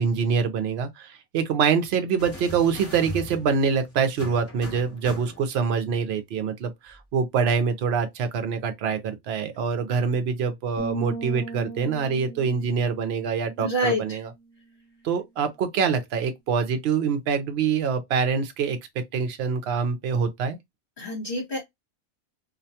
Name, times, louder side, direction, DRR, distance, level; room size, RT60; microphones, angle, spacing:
voice 1, 0.0-14.3 15.0-18.8 19.1-20.6, right 6 dB, 60° right, 0.7 m, -25 dB
sound 1, 2.2-5.7 6.9-7.0, equal, 15° left, 0.6 m, -40 dB
sound 2, 10.8-14.5, right 3 dB, 15° right, 0.8 m, -38 dB
voice 2, 13.6-14.2 21.0-21.6, equal, 40° left, 1.1 m, -27 dB
2.5 x 2.2 x 2.7 m
omnidirectional pair, 1.4 m